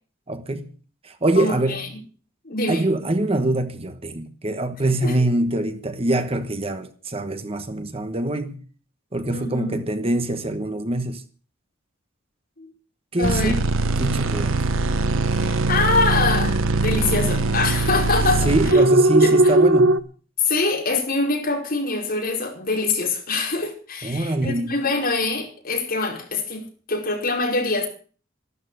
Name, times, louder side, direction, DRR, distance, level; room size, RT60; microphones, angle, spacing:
voice 1, 0.3-0.7 1.0-1.9 2.7-8.6 9.1-11.2 13.1-13.6 14.0-14.7 18.4-20.1 24.0-24.7, right 2 dB, 30° right, 1.1 m, -24 dB
voice 2, 1.3-1.9 2.4-2.8 5.0-5.1 9.3-9.8 12.6-12.7 13.2-13.5 15.3-18.5 19.2-19.3 20.4-27.9, left 3 dB, 50° left, 5.0 m, -24 dB
sound 1, 13.2-20.0, right 2 dB, 85° right, 1.1 m, -20 dB
14.0 x 12.5 x 6.4 m
head